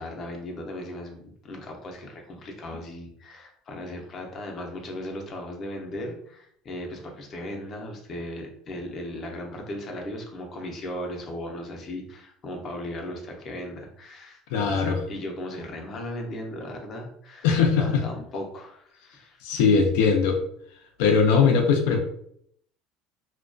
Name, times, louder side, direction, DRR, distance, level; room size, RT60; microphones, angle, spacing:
voice 1, 0.0-17.5 17.7-19.7, left 1 dB, 35° left, 2 dB, 0.5 m, -37 dB
voice 2, 14.5-15.0 17.4-18.0 19.4-20.4 21.0-22.0, left 5 dB, 90° left, 2 dB, 0.4 m, -20 dB
2.3 x 2.2 x 2.5 m, 0.67 s
cardioid pair, 150°, 0 cm